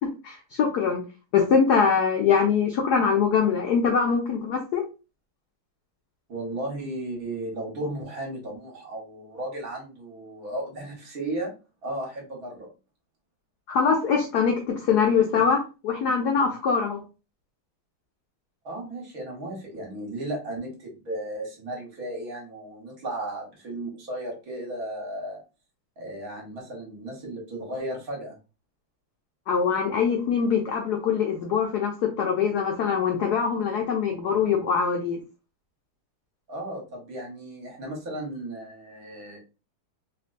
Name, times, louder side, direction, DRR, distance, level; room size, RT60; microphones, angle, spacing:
voice 1, 0.0-1.0 1.3-4.8 13.7-17.0 29.5-31.9 32.2-35.2, left 6 dB, 80° left, 2 dB, 0.9 m, -23 dB
voice 2, 6.3-11.5 11.8-12.7 18.6-25.4 26.0-28.4 36.5-39.4, right 1 dB, 50° right, -1 dB, 1.4 m, -35 dB
3.4 x 2.9 x 2.5 m, 0.31 s
omnidirectional pair, 2.4 m